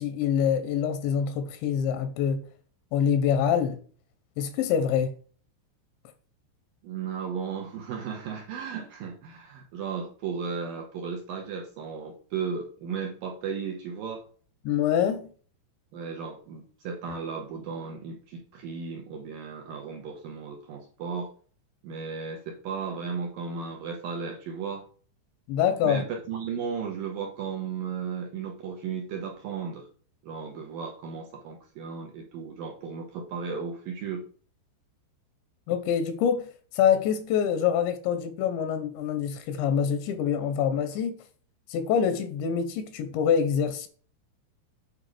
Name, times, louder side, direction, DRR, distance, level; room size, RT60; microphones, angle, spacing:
voice 1, 0.0-2.5 2.9-3.8 4.4-5.1 14.7-15.2 25.5-26.0 35.7-41.2 41.7-43.9, left 8 dB, 80° left, 2.9 m, -25 dB
voice 2, 6.8-14.2 15.9-21.3 21.8-24.9 25.8-29.9 30.2-34.3, right 6 dB, 75° right, 2.0 m, -35 dB
9.0 x 5.2 x 4.8 m
omnidirectional pair, 5.4 m